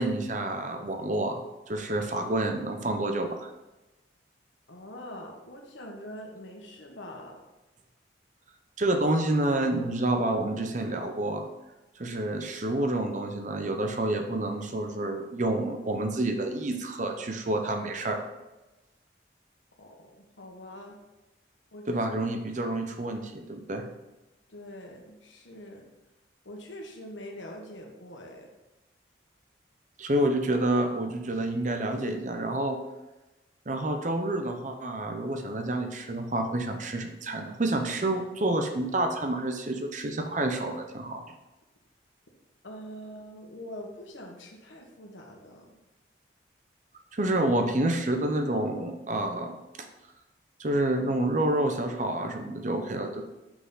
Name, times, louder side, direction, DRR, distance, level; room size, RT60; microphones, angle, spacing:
voice 1, 0.0-1.4 1.7-3.5 8.8-11.4 12.0-18.2 21.9-23.9 30.0-32.8 33.7-41.2 47.1-49.6 50.6-53.2, right 1 dB, 40° right, 5 dB, 0.7 m, -28 dB
voice 2, 4.7-7.4 19.8-21.0 21.7-22.0 24.5-25.8 26.4-28.5 42.6-45.7, equal, 80° left, 1 dB, 1.3 m, -44 dB
6.0 x 5.8 x 4.0 m, 1.0 s
head